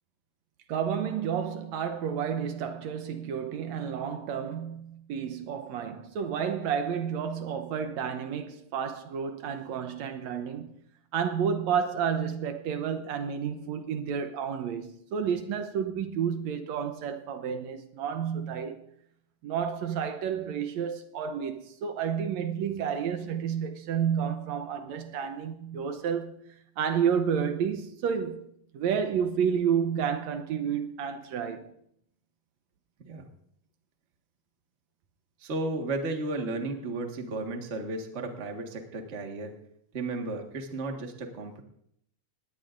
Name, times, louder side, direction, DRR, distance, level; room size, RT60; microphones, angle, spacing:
voice 1, 0.7-10.7 11.1-18.8 19.4-31.7, right 7 dB, 75° right, 2.1 m, -30 dB
voice 2, 35.4-39.5 39.9-41.6, right 2 dB, 30° right, 1.3 m, -34 dB
20.5 x 17.0 x 2.6 m
omnidirectional pair, 3.3 m